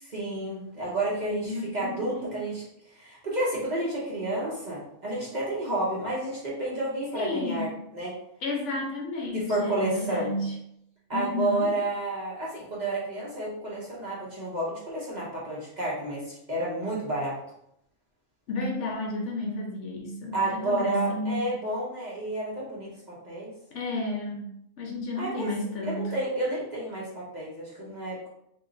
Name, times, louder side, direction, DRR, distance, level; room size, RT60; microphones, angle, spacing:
voice 1, 0.0-2.6 3.0-8.1 9.3-10.3 11.1-17.4 20.3-23.5 25.2-25.5 25.8-28.3, right 2 dB, 35° right, -6 dB, 1.0 m, -30 dB
voice 2, 1.4-2.4 7.1-7.7 8.4-10.5 11.1-11.7 18.5-21.4 23.7-26.1, left 2 dB, 65° left, -1 dB, 1.0 m, -32 dB
2.9 x 2.8 x 3.8 m, 0.76 s
omnidirectional pair, 1.4 m